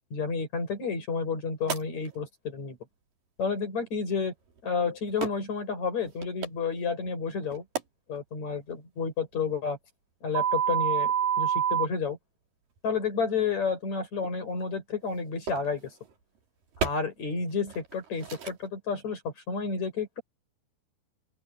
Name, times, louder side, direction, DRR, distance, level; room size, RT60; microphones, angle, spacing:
voice 1, 0.1-2.8 3.4-4.3 4.6-7.6 8.1-9.8 10.2-12.2 12.8-15.9 16.8-20.2, left 5 dB, 40° left, 7.8 m, -31 dB
sound 1, 1.7-1.8 4.1-4.2 5.2-5.3 6.1-6.5 7.4-7.8 10.4-11.9 14.2-14.3 15.5-15.7 16.8-16.9 17.7-17.9 18.2-18.5, right 8 dB, 50° right, 5.3 m, -27 dB
open air
omnidirectional pair, 5.2 m